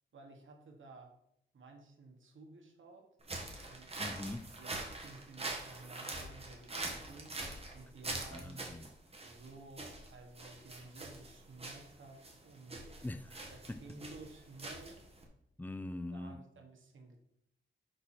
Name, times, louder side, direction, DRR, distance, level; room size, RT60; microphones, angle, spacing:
voice 1, 0.1-1.1 1.5-3.1 3.6-4.2 4.6-7.4 7.7-8.7 9.2-12.8 13.5-15.0 16.1-17.2, right 3 dB, 85° right, 1.3 m, -54 dB
sound 1, 3.2-15.2, right 2 dB, 30° right, 1.5 m, -44 dB
voice 2, 4.0-4.5 8.3-8.9 13.0-13.8 15.6-16.4, left 2 dB, 10° left, 0.4 m, -43 dB
10.5 x 4.3 x 4.4 m
wide cardioid pair, 145°, 20 cm